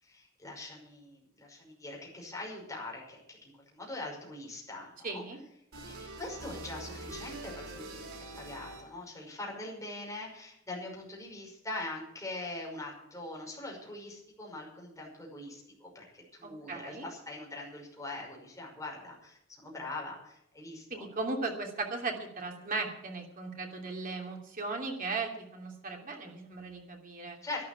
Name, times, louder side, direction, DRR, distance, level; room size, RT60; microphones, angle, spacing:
voice 1, 0.0-5.2 5.9-21.1 27.4-27.6, left 2 dB, 15° left, -2 dB, 5.7 m, -42 dB
voice 2, 5.0-5.4 16.4-17.0 20.9-27.4, right 3 dB, 40° right, 1 dB, 2.9 m, -37 dB
sound 1, 5.7-9.1, right 2 dB, 85° right, 4.4 m, -44 dB
12.5 x 11.5 x 7.6 m, 0.79 s
head